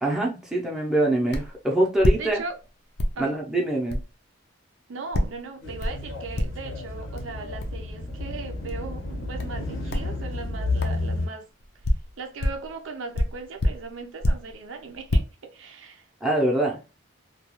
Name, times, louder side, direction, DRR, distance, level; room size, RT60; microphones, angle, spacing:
voice 1, 0.0-2.4 3.2-4.0 16.2-16.8, right 1 dB, 5° right, 0.6 m, -24 dB
sound 1, 1.3-1.6 2.0-2.7 3.0-3.2 3.9-4.1 5.1-5.4 5.8-6.1 6.4-6.7 7.2-7.3 7.6-7.8 8.7-8.8 9.4-9.6 9.9-10.1 10.8-11.0 11.6-12.7 13.1-14.6 14.9-15.2, left 1 dB, 55° left, 0.5 m, -26 dB
voice 2, 2.2-2.6 3.1-3.4 4.9-11.5 12.2-16.1, right 4 dB, 75° right, 0.5 m, -38 dB
sound 2, 5.6-11.3, left 2 dB, 75° left, 0.8 m, -31 dB
2.3 x 2.2 x 2.9 m
head